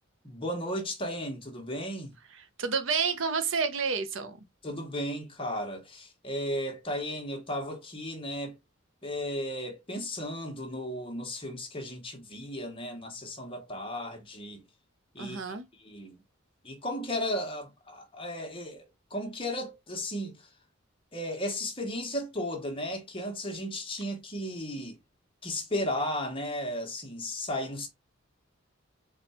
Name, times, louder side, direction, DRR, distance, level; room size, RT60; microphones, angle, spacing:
voice 1, 0.2-2.1 4.6-8.5 9.0-14.6 15.1-16.2 16.6-20.5 21.1-25.0 25.4-27.9, left 1 dB, 25° left, 1.1 m, -35 dB
voice 2, 2.6-4.4 15.2-15.7, right 5 dB, 65° right, 0.7 m, -29 dB
4.3 x 2.3 x 4.2 m
head